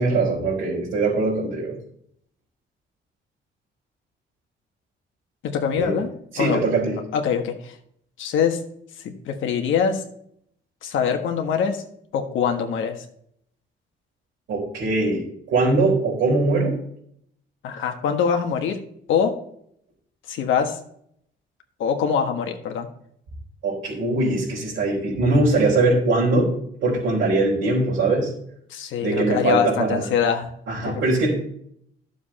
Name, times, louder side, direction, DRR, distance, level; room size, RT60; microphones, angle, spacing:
voice 1, 0.0-1.8 5.8-5.9 6.3-7.0 14.5-16.7 23.6-26.5 26.8-28.3 29.0-30.0 30.7-31.3, right 2 dB, 80° right, -7 dB, 4.0 m, -21 dB
voice 2, 5.4-6.1 6.4-6.6 7.1-7.7 8.2-8.6 9.2-10.0 10.8-11.8 12.1-13.0 17.6-18.8 19.1-19.3 20.3-20.7 21.8-22.9 28.7-30.5 30.9-31.0, left 7 dB, 80° left, 4 dB, 1.5 m, -23 dB
11.5 x 7.2 x 4.3 m, 0.69 s
cardioid pair, 90°, 20 cm